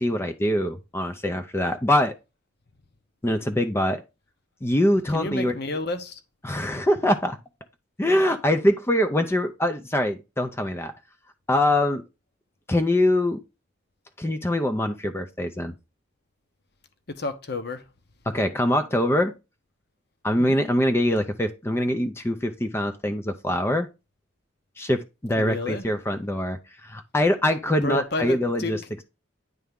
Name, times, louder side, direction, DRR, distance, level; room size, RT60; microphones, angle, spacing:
voice 1, 0.0-2.1 3.2-4.0 4.6-5.6 6.4-7.4 8.0-10.9 11.5-12.0 12.7-13.4 14.2-15.7 18.3-19.3 20.2-23.9 24.8-28.8, left 1 dB, 10° left, 0.4 m, -23 dB
voice 2, 5.1-6.2 17.1-17.8 20.4-20.6 25.4-25.9 27.8-28.7, left 2 dB, 55° left, 0.9 m, -31 dB
9.4 x 3.4 x 3.5 m
head